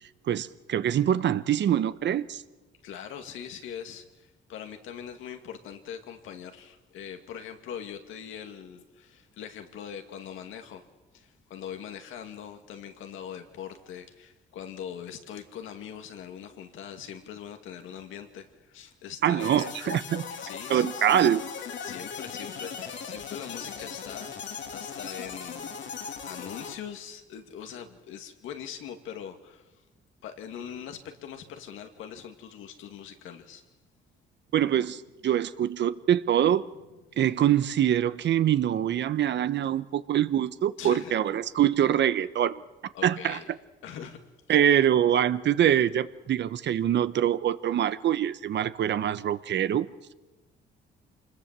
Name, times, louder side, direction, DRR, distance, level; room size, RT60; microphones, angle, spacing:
voice 1, 0.3-2.4 19.2-20.3 20.7-21.4 34.5-36.6 37.2-42.6 43.0-43.4 44.5-49.9, right 10 dB, 65° right, 14 dB, 1.0 m, -24 dB
voice 2, 2.8-10.9 11.1-19.7 20.4-21.2 21.8-24.3 24.7-25.8 26.2-29.7 30.2-33.6 40.8-41.1 42.9-43.5 43.8-44.2, left 8 dB, 85° left, 6 dB, 2.2 m, -42 dB
sound 1, 19.4-26.8, left 6 dB, 70° left, 2.6 m, -38 dB
25.5 x 20.5 x 7.5 m, 1.1 s
cardioid pair, 90°, 20 cm